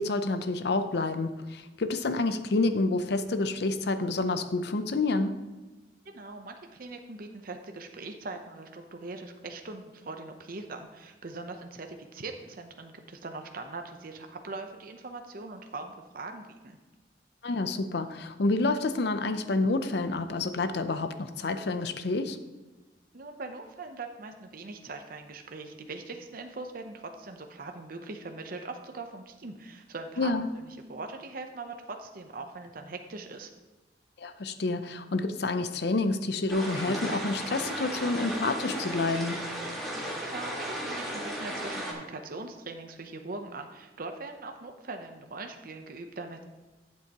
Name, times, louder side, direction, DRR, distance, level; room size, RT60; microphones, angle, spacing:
voice 1, 0.0-5.4 17.4-22.4 30.2-30.5 34.2-39.5, left 3 dB, 65° left, 10 dB, 0.6 m, -28 dB
voice 2, 6.1-16.8 23.1-33.5 40.2-46.4, right 3 dB, 55° right, 5 dB, 0.7 m, -41 dB
sound 1, 36.5-41.9, equal, ahead, 1.9 m, -35 dB
11.5 x 7.6 x 2.9 m, 1.2 s
head